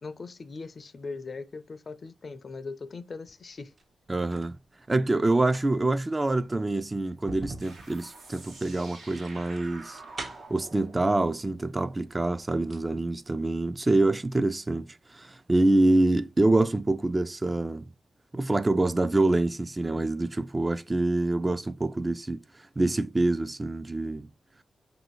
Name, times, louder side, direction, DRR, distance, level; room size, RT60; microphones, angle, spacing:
voice 1, 0.0-3.7, left 4 dB, 50° left, 0.4 m, -40 dB
sound 1, 3.6-4.6 5.3-10.7 11.6-11.7 12.1-12.9 13.2-13.3, right 3 dB, 55° right, 0.7 m, -44 dB
voice 2, 4.1-4.5 4.9-10.0 10.5-17.9 18.3-22.4 22.8-24.3, right 2 dB, 25° right, 0.3 m, -26 dB
sound 2, 7.6-12.9, right 2 dB, 90° right, 1.2 m, -48 dB
3.0 x 2.7 x 2.9 m
cardioid pair, 60°, 0 cm